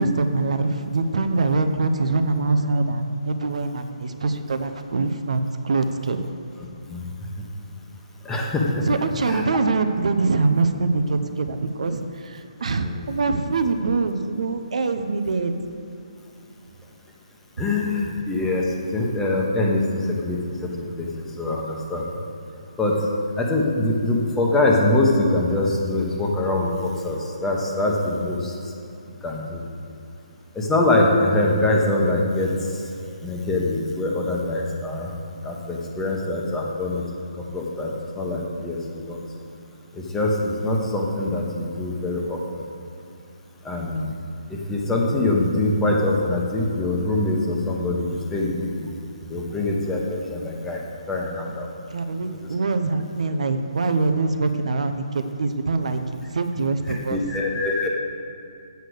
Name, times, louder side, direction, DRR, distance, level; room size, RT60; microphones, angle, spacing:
voice 1, 0.0-6.2 8.9-15.5 51.9-57.2, right 3 dB, 70° right, 8 dB, 0.7 m, -24 dB
voice 2, 8.2-8.8 9.3-9.4 12.8-13.1 17.6-18.6 18.9-21.1 21.4-22.1 22.8-23.0 23.4-28.5 29.2-29.6 30.5-32.5 33.2-35.1 35.4-37.0 37.5-38.8 39.1-39.2 40.1-42.6 43.6-44.1 44.5-48.9 49.3-50.8 51.1-51.7 52.3-52.4 57.1-57.9, left 2 dB, 10° left, -2 dB, 1.1 m, -23 dB
8.0 x 6.6 x 6.4 m, 2.7 s
hypercardioid pair, 155°, 4 cm